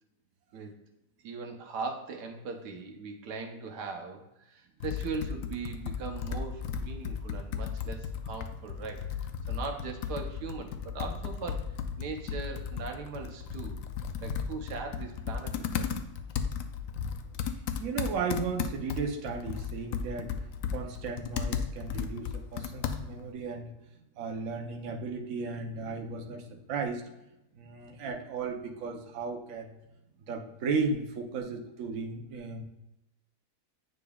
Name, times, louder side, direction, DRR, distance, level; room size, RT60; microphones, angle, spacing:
voice 1, 1.2-9.1 9.5-13.8 14.2-16.0, right 4 dB, 85° right, 4 dB, 1.4 m, -39 dB
Computer keyboard, 4.8-23.3, left 7 dB, 70° left, 0.8 m, -35 dB
voice 2, 17.8-23.7 24.2-27.0 27.5-29.7 30.3-32.6, right 4 dB, 60° right, 2 dB, 1.1 m, -35 dB
9.3 x 5.2 x 2.3 m, 0.91 s
omnidirectional pair, 1.7 m